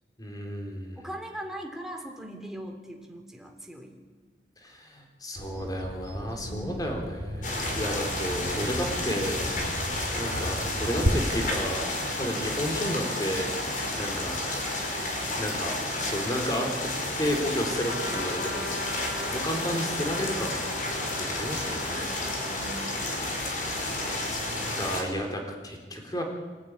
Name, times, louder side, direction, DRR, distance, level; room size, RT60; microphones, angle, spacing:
voice 1, 0.2-1.1 4.6-9.5 10.1-11.9 12.2-14.4 15.4-16.9 17.2-20.5 21.2-22.3 23.7-26.2, equal, 20° left, 2 dB, 4.2 m, -32 dB
voice 2, 1.0-4.0 6.4-6.9 21.9-22.9, right 1 dB, 5° right, 2 dB, 3.4 m, -40 dB
Bird vocalization bird call bird song, 5.4-11.1, equal, 90° right, 3.9 m, -34 dB
sound 1, 7.4-25.0, left 1 dB, 50° left, 5.3 m, -31 dB
Trumpet, 17.8-23.7, left 2 dB, 75° left, 3.4 m, -40 dB
25.5 x 17.5 x 9.8 m, 1.4 s
head